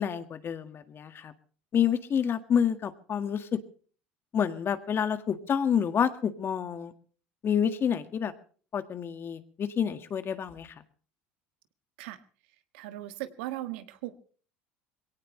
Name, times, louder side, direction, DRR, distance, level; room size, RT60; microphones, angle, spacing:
voice 1, 0.0-1.3 1.7-3.6 4.3-6.9 7.4-8.3 8.7-10.8, left 8 dB, 40° left, 10 dB, 1.8 m, -28 dB
voice 2, 12.7-14.2, right 15 dB, 75° right, 10 dB, 1.6 m, -38 dB
22.0 x 17.5 x 3.2 m, 0.41 s
hypercardioid pair, 80°, 6 cm